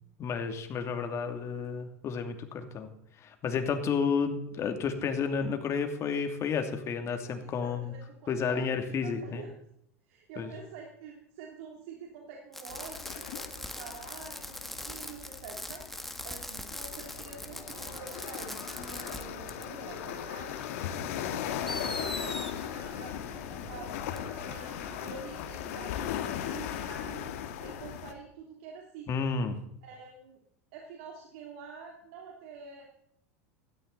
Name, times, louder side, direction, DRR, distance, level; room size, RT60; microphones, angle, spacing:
voice 1, 0.2-2.9 3.2-7.9 8.3-9.4 10.4-10.5 29.1-29.6, left 6 dB, 40° left, 6 dB, 2.7 m, -31 dB
voice 2, 7.3-9.5 10.0-20.6 20.9-24.1 24.4-29.3 29.8-30.4 30.7-32.9, right 5 dB, 65° right, 0 dB, 3.1 m, -47 dB
Fireworks, 12.5-19.2 19.5-19.6 20.7-20.8 21.7-22.5 24.2-24.3, left 1 dB, 5° left, 1.7 m, -41 dB
sound 1, 12.7-28.1, left 10 dB, 70° left, 1.9 m, -38 dB
sound 2, 17.1-27.1, right 4 dB, 40° right, 4.8 m, -51 dB
16.5 x 13.5 x 4.1 m, 0.72 s
hypercardioid pair, 95°, 8 cm